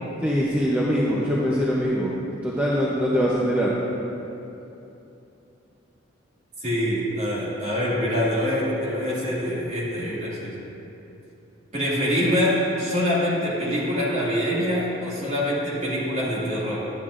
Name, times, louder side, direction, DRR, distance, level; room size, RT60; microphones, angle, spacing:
voice 1, 0.2-2.2 2.4-3.7, equal, 10° right, -6 dB, 0.6 m, -23 dB
voice 2, 6.6-10.5 11.7-16.8, equal, 35° right, -7 dB, 2.0 m, -25 dB
11.5 x 9.0 x 2.5 m, 2.9 s
head